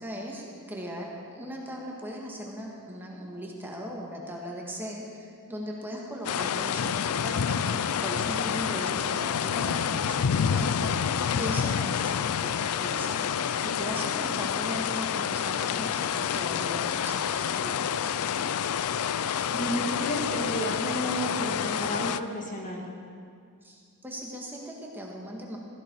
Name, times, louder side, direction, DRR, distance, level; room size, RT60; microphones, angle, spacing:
voice 1, 0.0-18.1 23.6-25.6, equal, 10° right, -2 dB, 1.8 m, -39 dB
sound 1, 6.2-22.2, left 8 dB, 75° left, 0.4 m, -28 dB
voice 2, 19.5-22.9, equal, 35° left, 0 dB, 1.9 m, -32 dB
16.0 x 15.0 x 4.6 m, 2.3 s
head